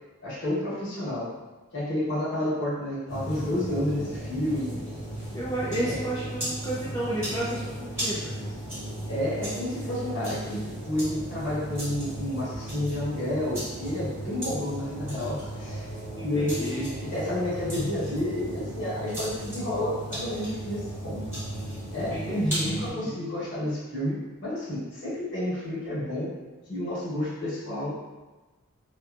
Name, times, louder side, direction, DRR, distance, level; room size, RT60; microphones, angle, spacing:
voice 1, 0.2-1.3 1.7-4.8 5.8-6.0 9.1-15.9 16.2-21.2 21.9-26.3 26.7-27.9, left 1 dB, 55° left, -9 dB, 1.0 m, -30 dB
sound 1, 3.1-22.9, right 1 dB, 10° right, 1.1 m, -35 dB
voice 2, 5.3-8.5 16.2-16.9 22.1-23.3, right 1 dB, 15° left, -10 dB, 0.4 m, -32 dB
2.7 x 2.3 x 2.4 m, 1.2 s
head